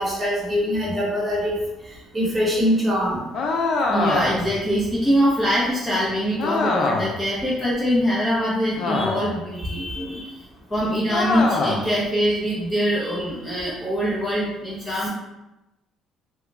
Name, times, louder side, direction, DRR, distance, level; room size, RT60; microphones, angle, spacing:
voice 1, 0.0-1.5 2.1-3.2, equal, 15° right, -6 dB, 1.2 m, -22 dB
sound 1, 3.3-4.6 6.4-7.2 8.8-9.4 11.1-11.9, left 3 dB, 55° left, 0.4 m, -23 dB
voice 2, 3.9-10.4 10.7-15.1, equal, 10° left, -8 dB, 0.7 m, -23 dB
3.1 x 2.3 x 3.2 m, 0.98 s
cardioid pair, 130°, 0 cm